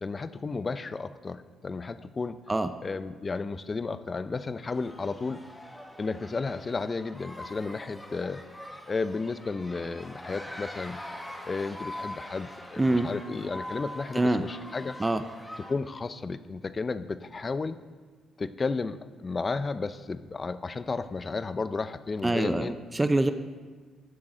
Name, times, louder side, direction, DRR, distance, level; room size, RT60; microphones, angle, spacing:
voice 1, 0.0-2.4 2.8-5.4 6.0-8.4 8.9-11.0 11.4-15.0 15.7-17.8 18.4-22.8, left 4 dB, 30° left, 14 dB, 0.5 m, -33 dB
sound 1, 4.7-15.7, left 1 dB, 10° left, 1.4 m, -43 dB
voice 2, 12.8-13.1 14.1-14.4 15.0-15.2 22.2-23.3, right 2 dB, 15° right, 10 dB, 0.5 m, -25 dB
14.0 x 10.5 x 3.8 m, 1.5 s
cardioid pair, 90°, 0 cm